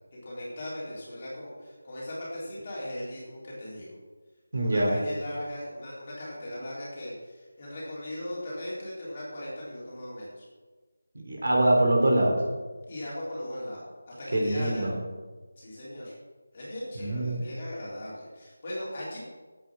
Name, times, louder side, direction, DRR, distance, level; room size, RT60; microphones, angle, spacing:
voice 1, 0.2-4.0 4.5-10.5 12.9-14.9 15.6-16.1 16.5-19.2, left 1 dB, 25° left, -7 dB, 3.8 m, -38 dB
voice 2, 4.5-4.9 11.3-12.3 14.3-14.9 17.0-17.4, right 1 dB, 55° right, -1 dB, 3.7 m, -23 dB
11.5 x 8.6 x 6.3 m, 1.3 s
figure-of-eight pair, 175°, 0 cm